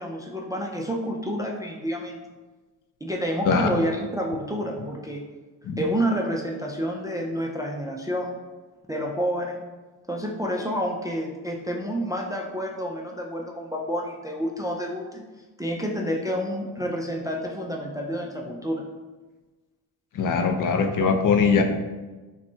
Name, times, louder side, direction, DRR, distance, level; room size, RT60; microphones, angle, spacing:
voice 1, 0.0-2.2 3.0-5.3 5.8-8.4 8.9-9.6 10.1-15.2 15.6-18.8, equal, 10° right, 0 dB, 0.4 m, -29 dB
voice 2, 3.4-3.8 5.6-5.8 20.1-21.6, left 5 dB, 45° left, 5 dB, 0.6 m, -21 dB
5.7 x 2.3 x 2.7 m, 1.3 s
supercardioid pair, 65°, 45 cm